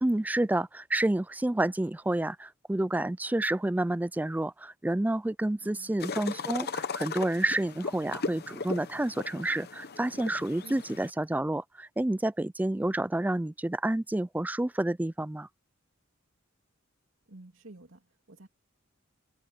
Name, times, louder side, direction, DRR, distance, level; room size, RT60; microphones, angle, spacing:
voice 1, 0.0-15.5, right 1 dB, 10° right, 0.3 m, -29 dB
voice 2, 5.6-6.0 10.6-10.9 17.3-18.5, right 2 dB, 65° right, 3.0 m, -51 dB
sound 1, 6.0-11.1, left 4 dB, 50° left, 0.9 m, -37 dB
head